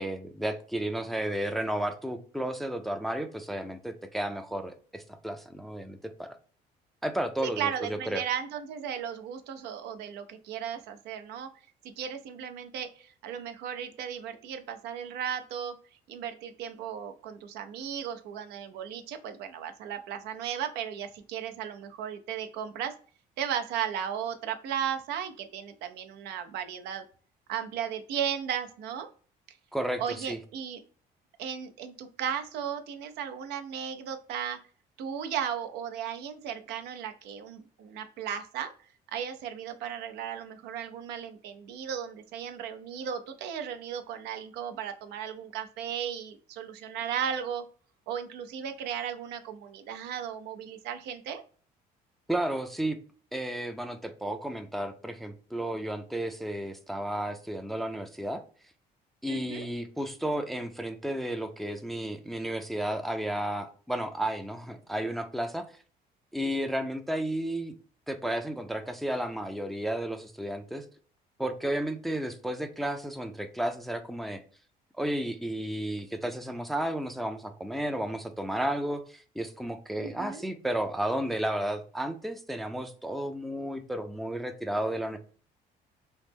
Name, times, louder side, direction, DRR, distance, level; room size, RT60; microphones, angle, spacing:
voice 1, 0.0-6.4 7.0-8.2 29.7-30.4 52.3-53.0 53.3-58.4 59.2-65.7 66.3-67.7 68.1-70.8 71.4-74.4 75.0-85.2, right 1 dB, ahead, 7 dB, 0.3 m, -33 dB
voice 2, 7.4-11.5 11.8-15.7 16.1-22.9 23.4-27.0 27.5-29.1 30.0-30.8 31.4-34.6 35.0-38.7 39.1-47.6 48.1-51.4 59.3-59.7 80.0-80.4, right 8 dB, 85° right, 8 dB, 0.5 m, -35 dB
3.1 x 2.0 x 3.4 m, 0.42 s
cardioid pair, 110°, 17 cm